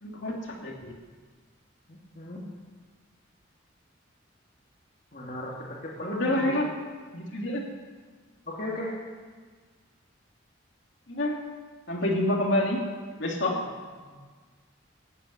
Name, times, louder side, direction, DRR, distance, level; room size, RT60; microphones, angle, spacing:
voice 1, 0.0-0.3 0.6-0.9 6.0-6.7 7.1-7.6 11.1-11.4 11.9-12.8 13.2-13.6, left 1 dB, 65° left, -1 dB, 2.8 m, -27 dB
voice 2, 1.9-2.5 5.1-6.6 8.5-9.0 14.1-14.2, left 1 dB, 45° left, -3 dB, 2.4 m, -37 dB
14.5 x 9.5 x 9.6 m, 1.5 s
head